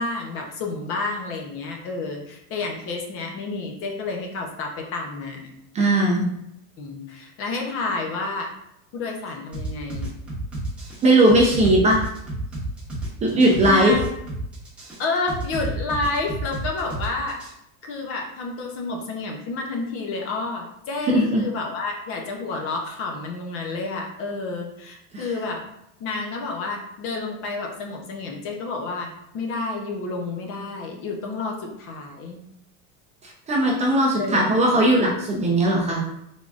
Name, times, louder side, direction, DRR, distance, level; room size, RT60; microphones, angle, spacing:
voice 1, 0.0-5.5 6.8-8.5 8.9-10.1 13.6-14.0 15.0-17.4 17.8-25.6 26.0-32.4 34.2-34.5, left 3 dB, 35° left, 2 dB, 0.7 m, -30 dB
voice 2, 5.7-6.3 11.0-12.0 13.2-14.0 21.1-21.4 25.1-25.2 33.2-36.0, right 1 dB, 20° right, -3 dB, 0.5 m, -18 dB
sound 1, 9.5-17.5, right 1 dB, 5° right, 1.1 m, -31 dB
3.8 x 3.5 x 2.4 m, 0.78 s
supercardioid pair, 150°, 38 cm